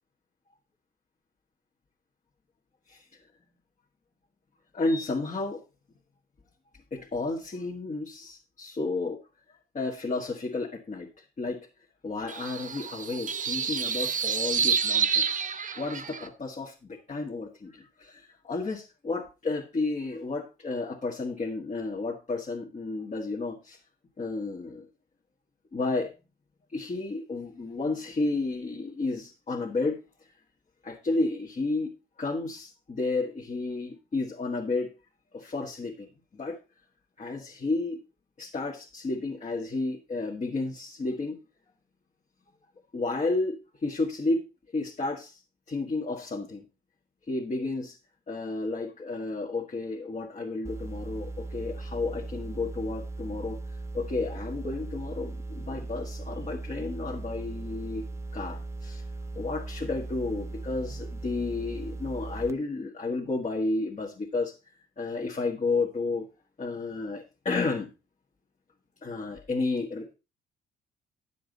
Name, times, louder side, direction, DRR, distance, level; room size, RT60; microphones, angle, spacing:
voice 1, 4.7-5.6 6.9-9.2 9.5-11.7 12.0-23.8 24.2-24.9 25.7-26.1 26.7-30.0 30.8-31.9 32.2-34.9 35.3-36.6 37.2-38.0 38.4-41.4 42.9-44.4 44.7-45.4 45.7-46.6 47.3-48.0 48.3-58.0 58.3-59.0 59.3-64.5 65.0-66.3 66.6-67.9 69.0-70.1, left 3 dB, 35° left, -1 dB, 1.7 m, -32 dB
sound 1, 12.3-16.3, right 6 dB, 40° right, 1.0 m, -28 dB
sound 2, 50.6-62.5, right 3 dB, 15° right, 0.7 m, -38 dB
10.5 x 7.4 x 4.0 m, 0.30 s
cardioid pair, 90°, 20 cm